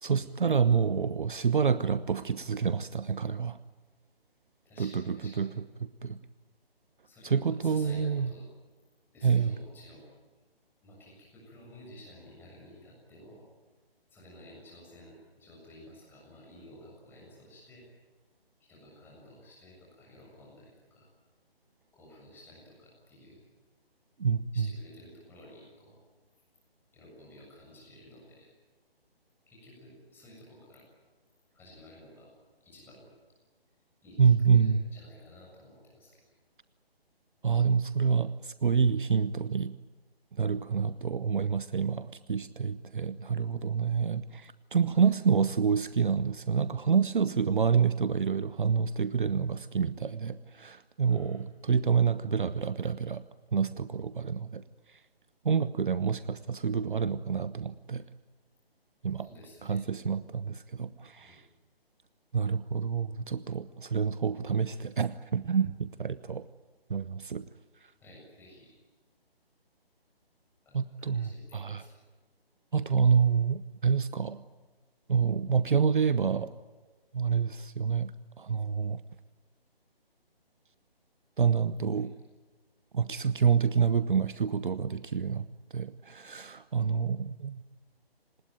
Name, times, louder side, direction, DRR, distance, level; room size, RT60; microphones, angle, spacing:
voice 1, 0.0-3.6 4.8-5.5 5.8-6.2 7.2-8.3 9.2-9.5 24.2-24.7 34.2-34.8 37.4-39.8 40.4-53.2 53.5-54.6 54.9-55.0 55.4-58.0 59.0-59.3 59.6-61.4 62.3-66.5 66.9-67.4 70.7-71.8 72.7-74.4 75.1-76.5 77.1-78.1 78.4-79.0 81.4-82.1 82.9-85.5 85.7-87.6, right 6 dB, 55° right, 15 dB, 0.9 m, -27 dB
voice 2, 4.6-5.5 7.0-8.5 9.1-10.1 10.8-13.4 14.1-17.9 18.6-21.1 21.9-23.4 24.5-26.0 26.9-28.5 29.5-30.8 31.5-32.3 32.6-33.2 34.0-36.2 40.7-40.9 44.9-45.1 51.0-51.4 59.2-59.8 61.2-61.4 68.0-68.7 70.6-72.0 81.9-82.1, left 1 dB, 5° left, -3 dB, 7.3 m, -53 dB
26.0 x 20.0 x 9.2 m, 1.3 s
figure-of-eight pair, 150°, 31 cm